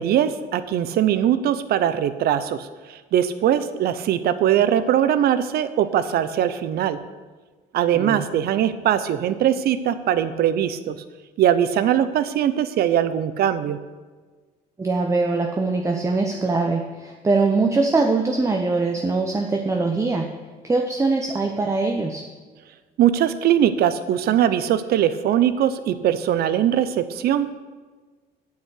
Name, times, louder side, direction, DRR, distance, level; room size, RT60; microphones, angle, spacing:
voice 1, 0.0-7.0 7.7-11.0 11.4-13.8 23.0-27.5, right 10 dB, 65° right, 12 dB, 0.7 m, -21 dB
voice 2, 7.9-8.2 14.8-20.3 20.6-22.2, right 3 dB, 15° right, 3 dB, 0.8 m, -22 dB
8.2 x 6.6 x 8.2 m, 1.4 s
cardioid pair, 110°, 17 cm